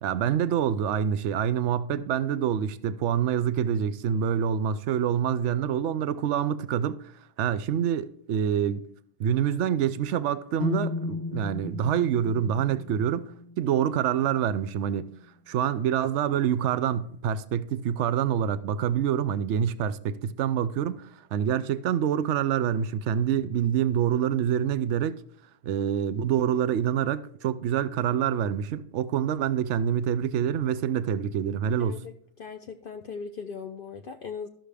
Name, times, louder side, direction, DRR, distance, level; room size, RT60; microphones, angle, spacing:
voice 1, 0.0-7.1 7.4-8.8 9.2-13.3 13.6-15.1 15.5-25.2 25.6-32.0, right 9 dB, 65° right, 0.7 m, -26 dB
sound 1, 10.6-14.5, left 3 dB, 20° left, 0.6 m, -35 dB
voice 2, 31.8-34.5, left 5 dB, 70° left, 0.5 m, -39 dB
13.5 x 6.1 x 3.4 m
omnidirectional pair, 1.7 m